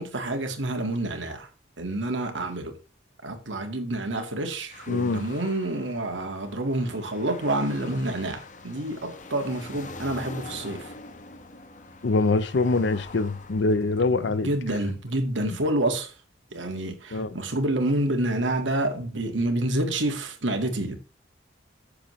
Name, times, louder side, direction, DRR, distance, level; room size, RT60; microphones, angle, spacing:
voice 1, 0.0-1.5 1.8-2.8 3.2-10.9 14.4-16.1 16.5-21.0, right 1 dB, 90° right, 1.9 m, -28 dB
sound 1, 4.7-14.9, left 3 dB, 40° left, 1.0 m, -44 dB
voice 2, 4.9-5.2 12.0-14.5 15.4-15.6 17.1-17.4, left 3 dB, 75° left, 0.6 m, -24 dB
13.5 x 6.9 x 3.2 m
head